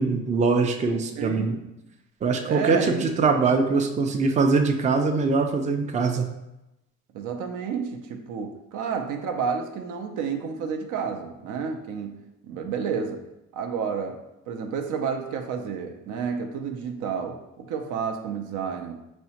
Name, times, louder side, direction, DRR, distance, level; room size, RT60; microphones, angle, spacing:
voice 1, 0.0-1.5 2.2-6.3, right 4 dB, 25° right, 4 dB, 0.3 m, -22 dB
voice 2, 1.2-1.7 2.4-3.1 7.1-13.2 13.5-14.2 14.5-19.0, right 6 dB, 80° right, 5 dB, 0.5 m, -30 dB
4.5 x 2.1 x 2.8 m, 0.91 s
cardioid pair, 90°, 30 cm